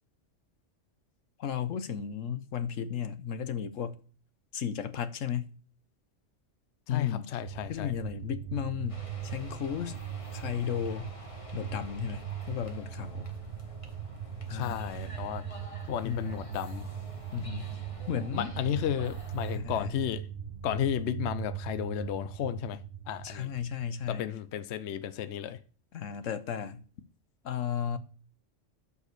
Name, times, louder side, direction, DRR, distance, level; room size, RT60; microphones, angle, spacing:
voice 1, 1.4-4.0 4.5-5.5 6.9-7.4 7.7-10.0 10.3-11.1 11.5-13.3 14.5-14.9 16.0-16.5 17.3-17.7 18.1-18.5 19.5-20.0 23.2-24.2 25.9-26.8 27.4-28.0, left 8 dB, 85° left, 1.3 m, -34 dB
voice 2, 6.9-7.9 14.5-15.4 15.9-16.9 18.3-20.2 20.6-22.8 23.1-23.5 24.1-25.6, left 10 dB, 65° left, 0.9 m, -33 dB
sound 1, 7.4-24.2, right 9 dB, 50° right, 1.0 m, -40 dB
sound 2, 8.9-19.6, left 1 dB, 25° left, 1.7 m, -50 dB
12.0 x 5.5 x 6.7 m
omnidirectional pair, 1.3 m